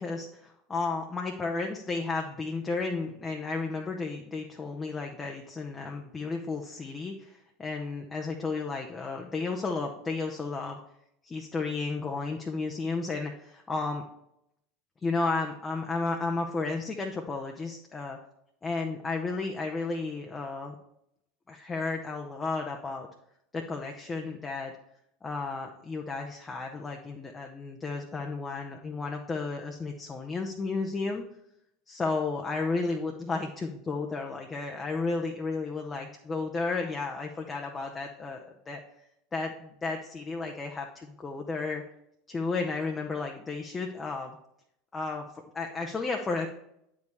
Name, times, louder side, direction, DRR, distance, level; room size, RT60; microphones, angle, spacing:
voice 1, 0.0-10.8 11.2-14.0 15.0-18.2 18.6-20.7 21.5-23.1 23.5-24.7 25.2-31.2 31.9-38.8 39.3-41.8 42.3-44.4 44.9-45.3 45.5-46.5, left 3 dB, 20° left, 2 dB, 0.7 m, -33 dB
9.1 x 5.3 x 3.4 m, 0.78 s
figure-of-eight pair, 75°, 0 cm